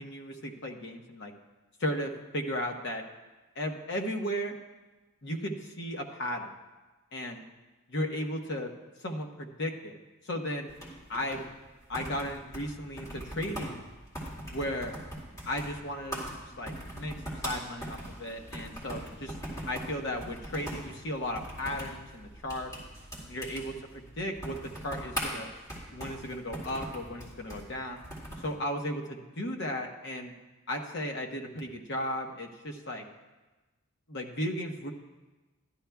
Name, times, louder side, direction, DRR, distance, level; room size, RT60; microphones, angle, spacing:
voice 1, 0.0-1.3 1.8-3.0 3.6-4.6 5.2-6.5 7.1-7.4 7.9-8.7 9.0-9.9 10.2-10.7 11.1-11.5 11.9-13.9 14.5-14.9 15.5-19.3 19.7-22.7 23.3-25.5 25.9-28.0 28.4-30.3 30.7-33.0 34.1-34.9, equal, 55° left, 3 dB, 1.0 m, -35 dB
sound 1, 10.7-28.5, right 1 dB, 15° left, 2.2 m, -41 dB
13.0 x 11.5 x 2.3 m, 1.1 s
head